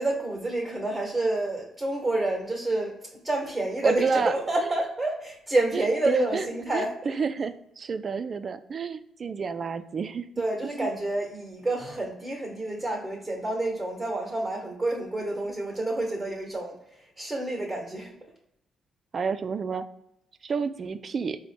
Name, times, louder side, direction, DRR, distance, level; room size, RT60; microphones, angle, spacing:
voice 1, 0.0-7.0 10.4-18.1, right 2 dB, 10° right, -1 dB, 1.0 m, -28 dB
voice 2, 3.8-4.3 5.7-6.4 6.7-10.3 10.8-10.9 19.1-19.8 20.4-21.4, right 5 dB, 45° right, 11 dB, 0.3 m, -30 dB
4.3 x 2.1 x 4.1 m, 0.80 s
cardioid pair, 90°, 0 cm